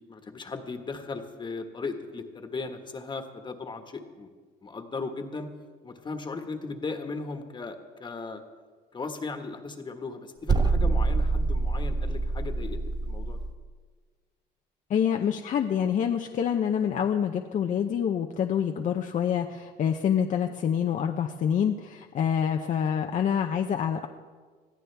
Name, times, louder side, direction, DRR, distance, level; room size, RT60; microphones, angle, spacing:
voice 1, 0.1-4.3 4.6-5.5 5.8-8.4 8.9-13.4, left 4 dB, 25° left, 6 dB, 1.5 m, -37 dB
sound 1, 10.5-13.6, right 3 dB, 25° right, 0.6 m, -26 dB
voice 2, 14.9-24.1, left 8 dB, 50° left, 4 dB, 0.7 m, -26 dB
21.0 x 14.0 x 3.4 m, 1.5 s
cardioid pair, 110°, 17 cm